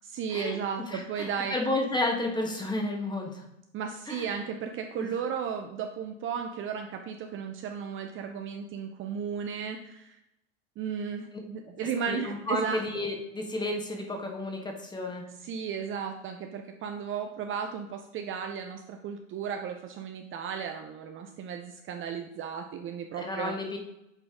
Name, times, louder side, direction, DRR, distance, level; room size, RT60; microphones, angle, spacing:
voice 1, 0.0-1.6 3.7-10.2 10.8-12.8 15.4-23.6, right 7 dB, 35° right, 5 dB, 0.7 m, -35 dB
voice 2, 0.9-3.4 4.1-4.4 5.0-5.1 12.1-15.2 23.2-23.8, left 2 dB, 10° left, 2 dB, 1.5 m, -32 dB
8.0 x 4.0 x 3.7 m, 0.84 s
hypercardioid pair, 95°, 36 cm